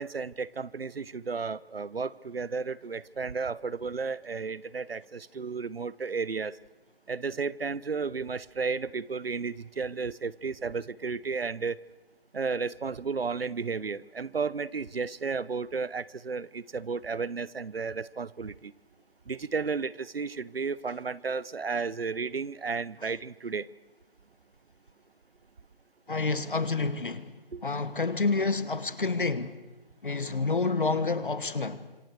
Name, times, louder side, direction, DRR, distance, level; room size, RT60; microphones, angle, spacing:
voice 1, 0.0-6.6 7.1-11.8 12.3-18.7 19.3-23.7 27.5-27.6, right 5 dB, 75° right, 0.9 m, -33 dB
voice 2, 26.1-27.3 27.6-29.6 30.0-31.9, left 3 dB, 60° left, 1.6 m, -28 dB
30.0 x 26.5 x 4.7 m
figure-of-eight pair, 175°, 30 cm